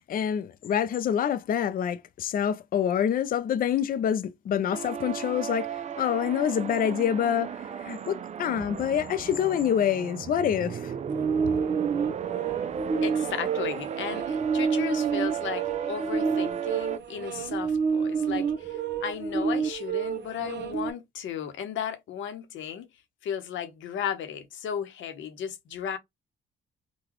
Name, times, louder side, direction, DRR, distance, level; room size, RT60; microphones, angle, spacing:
voice 1, 0.0-10.9, left 9 dB, 45° left, 0.4 m, -27 dB
sound 1, 4.7-17.0, right 8 dB, 35° right, 0.4 m, -35 dB
sound 2, 11.1-20.9, right 6 dB, 60° right, 0.9 m, -29 dB
voice 2, 13.0-22.9 23.2-26.0, left 8 dB, 75° left, 0.9 m, -35 dB
3.9 x 2.2 x 2.9 m
cardioid pair, 90°, 20 cm